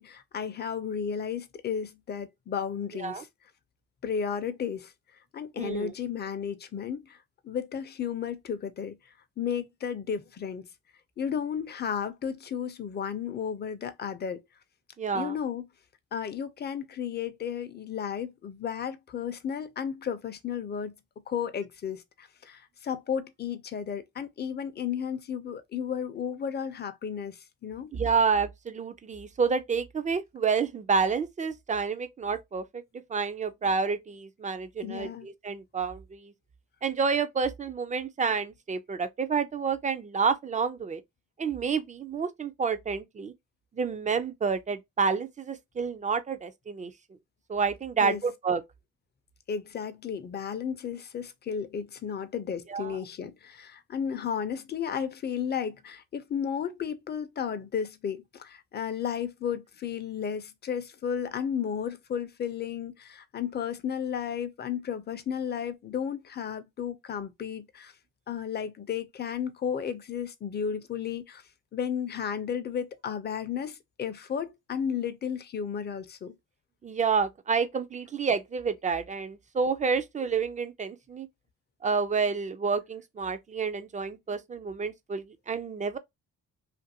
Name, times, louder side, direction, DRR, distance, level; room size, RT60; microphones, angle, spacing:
voice 1, 0.0-3.3 4.0-4.9 5.3-7.2 7.4-9.0 9.4-10.7 11.2-14.4 15.1-15.6 16.1-20.9 21.3-27.9 34.8-35.3 48.0-48.2 49.5-67.9 68.3-71.4 71.7-76.3, left 7 dB, 35° left, 0.5 m, -33 dB
voice 2, 5.6-5.9 15.0-15.3 27.9-32.8 33.1-36.3 36.8-41.0 41.4-43.3 43.7-46.9 47.5-48.6 52.7-53.0 76.8-81.3 81.8-86.0, right 5 dB, 25° right, 0.4 m, -29 dB
2.5 x 2.5 x 2.7 m
cardioid pair, 90°, 30 cm